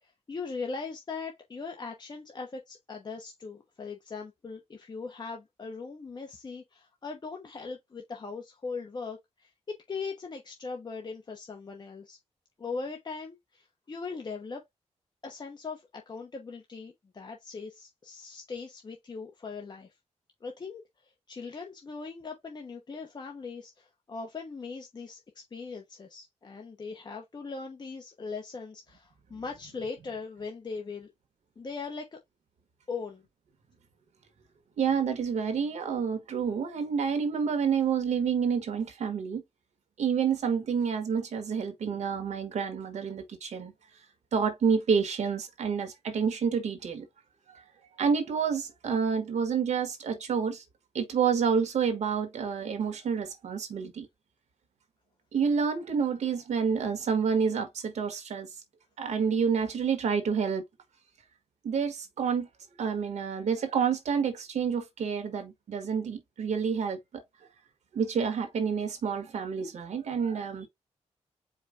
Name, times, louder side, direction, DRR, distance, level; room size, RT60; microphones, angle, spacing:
voice 1, 0.0-12.2 12.6-14.6 15.2-19.9 20.4-31.1 31.6-32.2 32.9-33.2, left 4 dB, 40° left, 0.9 m, -40 dB
voice 2, 34.8-39.4 40.0-43.7 44.3-47.0 47.5-47.6 48.0-50.6 50.9-54.1 55.3-58.5 59.0-60.6 61.6-62.5 62.8-67.2 67.9-70.7, right 6 dB, 80° right, 1.3 m, -28 dB
4.9 x 2.3 x 4.8 m
cardioid pair, 100°, 12 cm